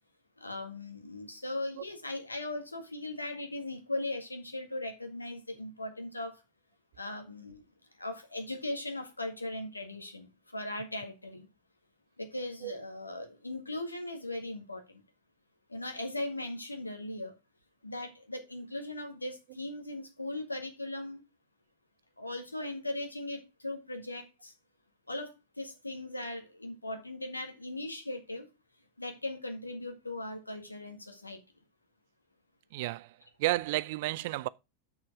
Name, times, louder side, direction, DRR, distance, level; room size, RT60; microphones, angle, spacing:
voice 1, 0.4-6.4 6.9-7.6 7.9-11.5 12.2-15.0 15.7-17.3 17.8-21.2 22.2-24.5 25.1-28.5 29.0-31.4, left 1 dB, 85° left, 1.8 m, -39 dB
voice 2, 32.7-33.1 33.4-34.5, right 18 dB, 50° right, 0.4 m, -31 dB
7.2 x 6.6 x 4.8 m
figure-of-eight pair, 90°, 0 cm